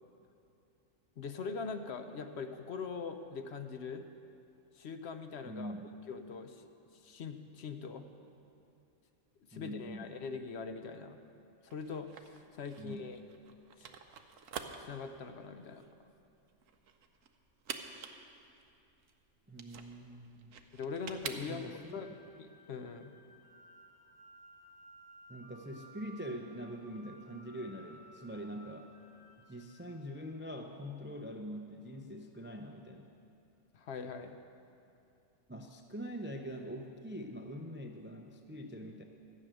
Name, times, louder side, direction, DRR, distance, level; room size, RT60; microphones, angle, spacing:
voice 1, 1.2-4.1 4.7-5.7 6.1-8.0 9.5-11.2 11.6-13.2 13.8-13.9 14.8-15.8 20.7-22.1 22.4-23.1 33.7-34.4, left 5 dB, 60° left, 7 dB, 0.9 m, -42 dB
voice 2, 5.5-5.9 9.5-10.1 12.8-13.1 19.5-20.5 21.5-22.0 25.3-28.9 29.4-33.1 35.5-39.0, equal, 20° right, 4 dB, 0.3 m, -44 dB
sound 1, 11.7-21.9, right 6 dB, 75° right, 1.1 m, -48 dB
sound 2, 21.4-30.6, right 1 dB, 35° left, 2.7 m, -58 dB
13.5 x 6.5 x 9.1 m, 2.6 s
omnidirectional pair, 1.4 m